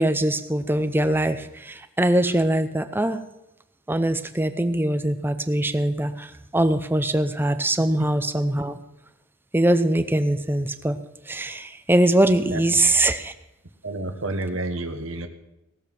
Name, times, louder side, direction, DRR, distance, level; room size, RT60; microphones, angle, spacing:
voice 1, 0.0-3.2 3.9-8.8 9.5-11.0 11.3-13.3, right 1 dB, 10° right, 10 dB, 0.6 m, -22 dB
voice 2, 13.8-15.3, right 2 dB, 65° right, 7 dB, 1.3 m, -29 dB
18.0 x 7.3 x 6.0 m, 0.93 s
head